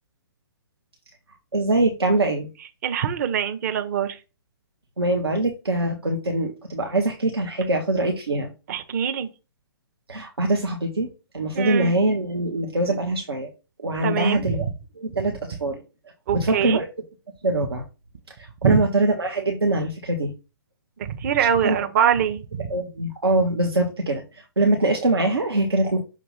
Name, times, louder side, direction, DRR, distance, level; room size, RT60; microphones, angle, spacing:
voice 1, 1.5-2.5 5.0-8.5 10.1-13.5 13.8-14.7 15.0-15.8 16.3-16.9 17.4-17.8 18.4-20.3 21.6-21.8 22.7-26.0, right 2 dB, 80° right, 1 dB, 1.1 m, -23 dB
voice 2, 2.8-4.2 8.7-9.3 11.5-11.9 14.0-14.6 16.3-16.8 18.6-18.8 21.0-22.7, right 8 dB, 40° right, 7 dB, 1.0 m, -23 dB
6.2 x 2.9 x 5.5 m, 0.31 s
figure-of-eight pair, 125°, 13 cm